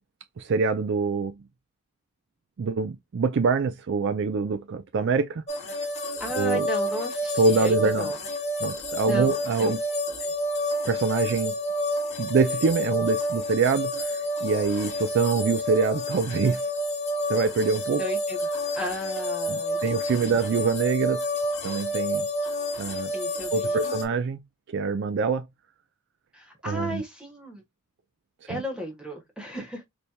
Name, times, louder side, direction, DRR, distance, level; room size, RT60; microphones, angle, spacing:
voice 1, 0.4-1.3 2.6-5.4 6.4-6.7 7.3-8.1 8.6-9.8 10.9-11.5 12.2-16.6 17.3-18.0 19.5-21.2 21.6-22.3 22.8-23.1 23.5-24.4 24.7-25.4 26.7-27.0 28.5-28.6, right 4 dB, 50° right, 0.4 m, -25 dB
sound 1, 5.5-24.0, left 1 dB, 30° left, 1.1 m, -29 dB
voice 2, 6.2-8.2 9.0-9.7 10.2-10.3 18.0-18.4 18.7-20.3 23.1-23.9 26.3-27.6 28.5-29.8, equal, 5° right, 1.3 m, -34 dB
4.2 x 3.3 x 2.2 m
head